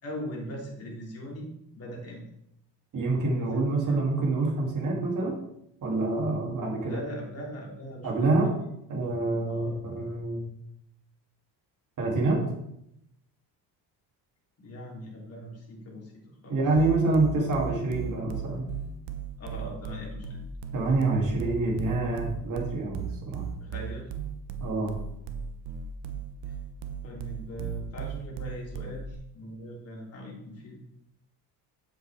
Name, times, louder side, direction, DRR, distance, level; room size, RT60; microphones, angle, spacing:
voice 1, 0.0-1.5 1.7-2.2 3.4-4.0 6.8-8.3 9.4-9.8 14.6-16.6 17.0-17.5 19.4-20.4 23.6-24.1 27.0-30.8, equal, 35° left, -3 dB, 3.3 m, -40 dB
voice 2, 2.9-5.3 5.8-7.0 8.0-8.6 8.9-10.5 12.0-12.4 16.5-18.7 20.7-23.4 24.6-24.9, right 2 dB, 45° right, -1 dB, 2.8 m, -27 dB
sound 1, 16.8-29.1, right 7 dB, 90° right, 1.0 m, -36 dB
8.9 x 7.6 x 3.5 m, 0.78 s
cardioid pair, 130°, 41 cm